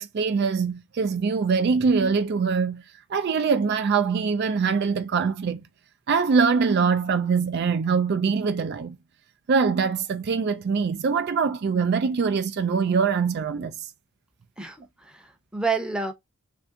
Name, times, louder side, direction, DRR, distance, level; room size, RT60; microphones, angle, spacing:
voice 1, 0.0-2.8 3.1-5.6 6.1-9.0 9.5-13.9, right 5 dB, 50° right, 0.3 m, -23 dB
voice 2, 14.6-16.1, right 4 dB, 5° right, 0.7 m, -29 dB
3.4 x 2.6 x 3.5 m
head